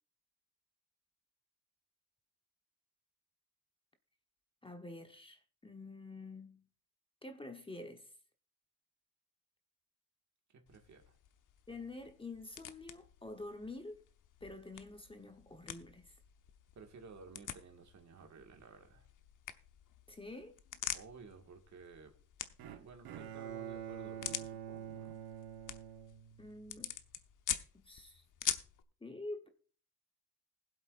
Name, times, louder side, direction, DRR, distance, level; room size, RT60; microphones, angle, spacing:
voice 1, 4.6-6.7 7.2-8.1 11.7-14.0 14.4-16.2 20.1-20.6 26.4-26.9 27.7-28.2 29.0-29.5, left 2 dB, 15° left, 1.0 m, -48 dB
voice 2, 10.5-11.2 16.8-19.1 20.9-22.2 22.7-25.2, right 4 dB, 50° right, 1.9 m, -55 dB
sound 1, 10.7-28.8, left 10 dB, 60° left, 0.9 m, -46 dB
Bowed string instrument, 22.6-26.8, right 10 dB, 75° right, 1.3 m, -46 dB
20.5 x 7.9 x 2.5 m
cardioid pair, 100°, 36 cm